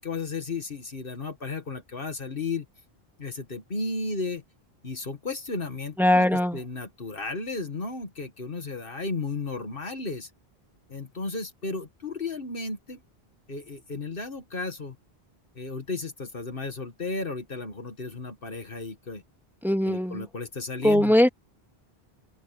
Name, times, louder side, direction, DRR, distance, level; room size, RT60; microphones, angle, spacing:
voice 1, 0.0-2.7 3.2-4.4 4.8-10.3 10.9-13.0 13.5-15.0 15.6-19.2 19.8-21.1, left 3 dB, 60° left, 1.9 m, -34 dB
voice 2, 6.0-6.6 19.6-20.2 20.8-21.3, left 1 dB, ahead, 2.1 m, -20 dB
open air
omnidirectional pair, 1.0 m